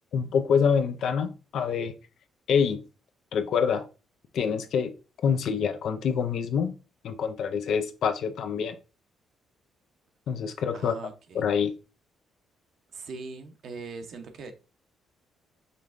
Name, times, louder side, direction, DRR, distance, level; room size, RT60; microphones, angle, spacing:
voice 1, 0.1-1.9 2.5-2.8 3.3-3.8 4.3-4.9 5.2-6.7 7.0-8.8 10.3-11.0 11.3-11.7, left 6 dB, 70° left, 0.5 m, -26 dB
voice 2, 10.7-11.5 12.9-14.5, right 4 dB, 65° right, 0.8 m, -41 dB
5.3 x 3.2 x 2.5 m
cardioid pair, 90°, 0 cm